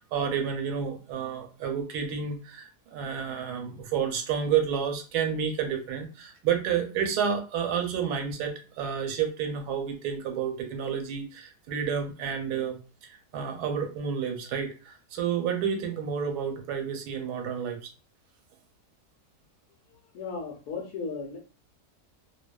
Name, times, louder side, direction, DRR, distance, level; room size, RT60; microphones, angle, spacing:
voice 1, 0.0-17.9, right 7 dB, 90° right, 5 dB, 1.1 m, -30 dB
voice 2, 20.1-21.4, left 4 dB, 75° left, 2 dB, 1.1 m, -35 dB
2.6 x 2.2 x 2.2 m, 0.35 s
omnidirectional pair, 1.6 m